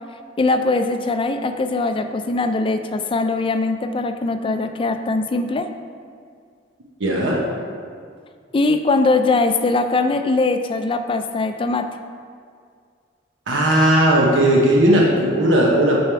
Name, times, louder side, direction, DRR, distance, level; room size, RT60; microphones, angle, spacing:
voice 1, 0.4-5.7 8.5-11.9, left 3 dB, 30° left, 8 dB, 0.4 m, -21 dB
voice 2, 7.0-7.4 13.5-16.0, right 1 dB, 90° right, -3 dB, 0.9 m, -16 dB
9.3 x 3.5 x 4.5 m, 2.1 s
head